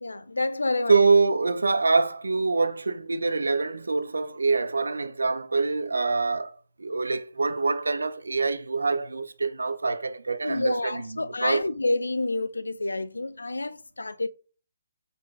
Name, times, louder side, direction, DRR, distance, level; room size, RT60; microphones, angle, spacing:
voice 1, 0.0-1.0 10.4-14.3, left 2 dB, 80° left, 0.3 m, -28 dB
voice 2, 0.9-11.6, right 4 dB, 75° right, 0.4 m, -25 dB
5.1 x 3.7 x 2.3 m
figure-of-eight pair, 140°, 0 cm